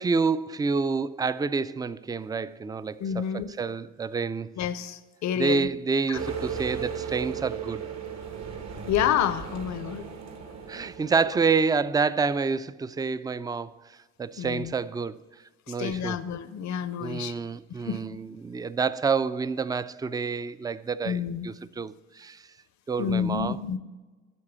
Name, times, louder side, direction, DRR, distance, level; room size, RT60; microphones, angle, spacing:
voice 1, 0.0-4.5 5.4-7.9 10.7-13.8 14.2-15.2 15.7-16.2 17.0-22.4 22.9-23.6, right 4 dB, 15° right, 0.3 m, -28 dB
voice 2, 3.0-3.5 4.6-5.7 6.1-6.2 8.9-10.0 14.4-14.7 15.7-17.3 17.9-18.0 21.0-21.5 23.0-23.8, left 9 dB, 65° left, 0.7 m, -29 dB
sound 1, 6.1-11.7, right 7 dB, 60° right, 1.6 m, -36 dB
9.7 x 6.7 x 7.4 m
cardioid pair, 90°, 30 cm